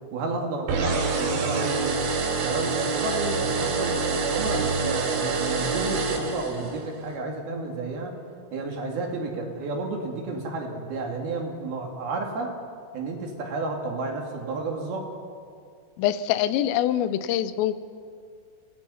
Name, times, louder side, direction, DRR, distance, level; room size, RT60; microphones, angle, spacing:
voice 1, 0.1-2.0 2.4-8.1 8.5-12.5 12.9-15.1, right 3 dB, 55° right, 1 dB, 3.8 m, -31 dB
sound 1, 0.7-6.9, right 4 dB, 80° right, 5.3 m, -26 dB
voice 2, 16.0-17.8, left 11 dB, 85° left, 13 dB, 3.4 m, -24 dB
29.5 x 19.5 x 5.6 m, 2.2 s
omnidirectional pair, 5.8 m